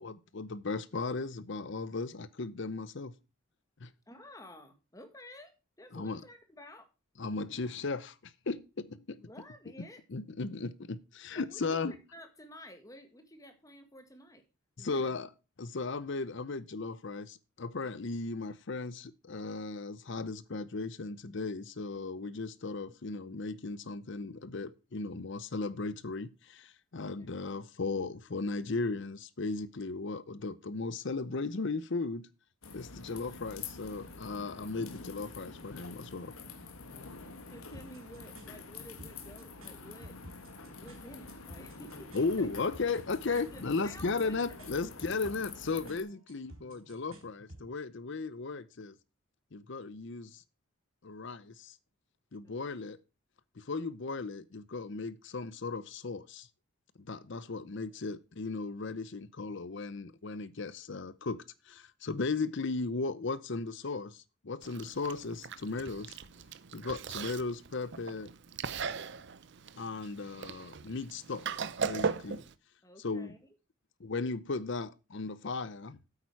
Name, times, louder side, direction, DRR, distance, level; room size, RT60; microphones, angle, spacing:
voice 1, 0.0-3.1 3.8-3.9 5.9-6.2 7.2-9.3 10.1-11.9 14.8-15.3 15.6-32.3 32.7-36.3 42.1-49.0 49.5-50.4 51.0-51.8 52.3-53.0 53.6-56.5 57.0-66.2 66.7-68.3 69.8-71.5 71.8-72.4 73.0-73.3 74.0-76.0, left 3 dB, 55° left, 0.7 m, -36 dB
voice 2, 4.1-6.9 9.2-10.0 11.4-11.6 11.9-14.4 14.8-15.1 27.2-27.3 37.5-40.2 40.8-42.5 42.9-43.0 43.3-44.5 52.4-52.9 57.5-57.6 57.9-58.0 72.8-73.4, left 1 dB, 15° left, 1.8 m, -52 dB
sound 1, 32.6-46.0, left 4 dB, 85° left, 1.7 m, -47 dB
sound 2, 37.7-47.7, right 1 dB, 75° right, 4.1 m, -55 dB
Chewing mastication, 64.6-72.5, right 5 dB, 55° right, 0.6 m, -39 dB
8.7 x 8.7 x 4.6 m
head